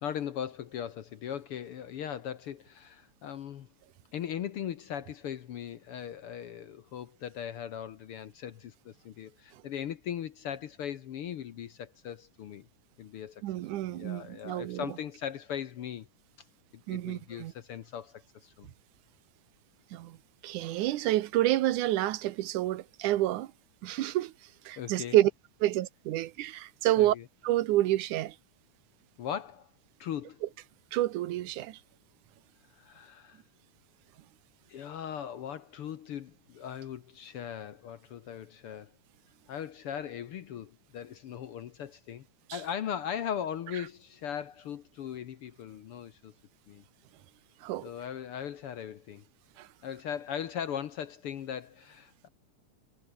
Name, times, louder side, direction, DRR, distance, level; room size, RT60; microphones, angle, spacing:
voice 1, 0.0-3.7 4.1-12.7 13.0-13.4 13.8-16.1 16.7-18.7 24.8-25.2 27.0-27.3 29.2-29.7 30.0-30.4 32.7-33.4 34.7-38.9 39.5-42.3 42.5-46.3 46.7-46.8 47.8-49.2 49.8-52.3, left 9 dB, 60° left, 1.6 m, -39 dB
voice 2, 13.4-14.8 16.9-17.5 19.9-20.1 20.4-23.5 23.8-24.3 24.7-25.3 25.6-27.2 27.4-28.3 30.9-31.8 47.6-47.9 49.6-49.7, right 15 dB, 90° right, 2.5 m, -28 dB
omnidirectional pair, 3.5 m